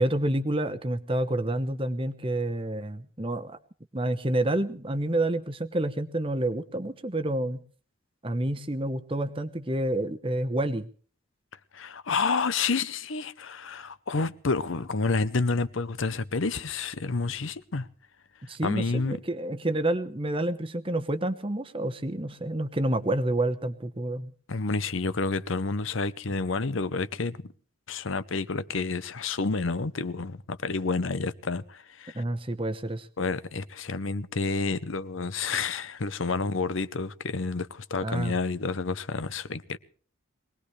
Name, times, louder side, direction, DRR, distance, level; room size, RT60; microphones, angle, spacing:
voice 1, 0.0-3.6 3.9-7.6 8.2-10.9 18.4-24.3 32.1-33.1 38.0-38.3, right 1 dB, 25° right, 1.0 m, -28 dB
voice 2, 11.7-17.9 18.6-19.2 24.5-27.4 27.9-32.2 33.2-39.8, left 4 dB, 75° left, 0.8 m, -29 dB
23.0 x 19.0 x 3.3 m
head